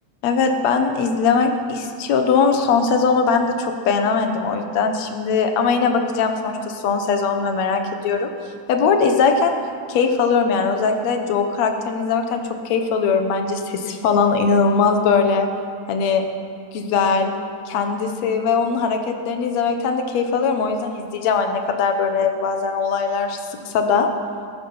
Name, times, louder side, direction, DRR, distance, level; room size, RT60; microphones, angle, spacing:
voice 1, 0.2-8.3 8.7-9.5 9.9-15.5 15.9-16.2 16.7-17.3 17.7-24.1, left 5 dB, 70° left, 5 dB, 2.5 m, -20 dB
20.5 x 12.5 x 5.6 m, 2.3 s
omnidirectional pair, 3.3 m